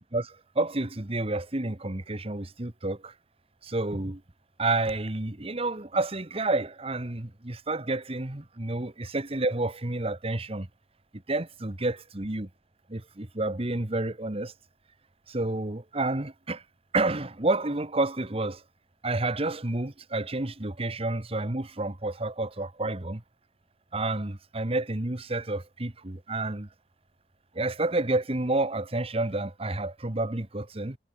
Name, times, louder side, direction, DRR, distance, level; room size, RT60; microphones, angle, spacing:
voice 1, 0.1-3.1 3.6-4.2 4.6-10.7 11.3-12.5 12.9-14.5 15.3-16.6 16.9-18.6 19.0-23.2 23.9-26.7 27.5-31.0, right 2 dB, 35° right, 1.4 m, -30 dB
head